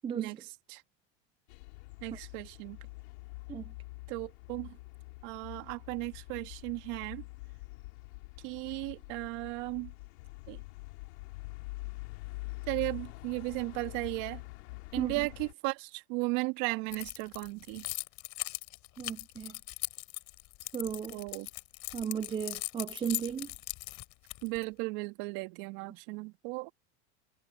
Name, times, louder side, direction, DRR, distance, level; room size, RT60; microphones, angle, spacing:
voice 1, 0.0-0.4 2.1-2.2 3.5-3.7 15.0-15.3 19.0-19.6 20.7-21.2 21.9-23.5, right 7 dB, 15° right, 0.4 m, -36 dB
sound 1, 1.5-15.5, left 24 dB, 75° left, 3.8 m, -45 dB
voice 2, 2.0-2.8 4.1-4.8 5.2-7.2 8.4-9.9 10.5-10.6 12.7-14.4 14.9-17.8 21.1-21.5 24.4-26.7, right 26 dB, 65° right, 2.0 m, -36 dB
Keys jangling, 16.9-24.6, left 21 dB, 55° left, 4.2 m, -39 dB
hypercardioid pair, 105°, 34 cm